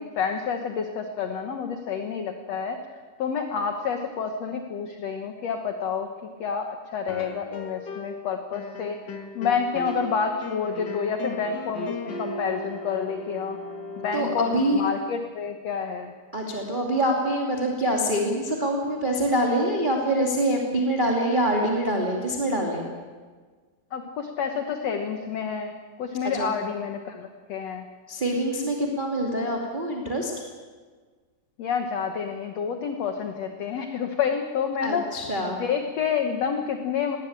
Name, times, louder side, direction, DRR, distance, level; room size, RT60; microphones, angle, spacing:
voice 1, 0.0-2.8 3.2-6.1 6.4-9.0 9.4-13.6 14.0-16.1 23.9-27.9 31.6-35.1 35.5-37.2, left 6 dB, 65° left, 5 dB, 1.7 m, -29 dB
sound 1, 7.1-8.2 8.5-14.4, left 2 dB, 45° left, 1.4 m, -36 dB
voice 2, 14.1-14.8 16.3-22.9 26.2-26.6 28.1-30.3 34.8-35.6, right 1 dB, 15° right, -1 dB, 2.1 m, -25 dB
20.5 x 18.0 x 8.8 m, 1.5 s
omnidirectional pair, 4.5 m